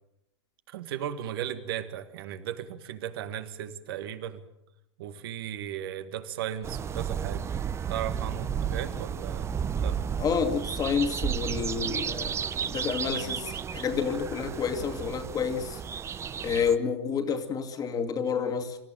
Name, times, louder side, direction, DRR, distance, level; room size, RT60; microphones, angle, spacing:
voice 1, 0.7-4.4 5.0-7.5 7.9-9.5 9.8-10.0, right 10 dB, 55° right, 1.8 m, -36 dB
sound 1, 6.6-16.8, right 7 dB, 20° right, 0.8 m, -33 dB
voice 2, 10.2-12.4 12.6-15.8 16.4-18.8, left 6 dB, 25° left, 2.4 m, -29 dB
26.5 x 14.5 x 9.0 m
figure-of-eight pair, 95°, 15 cm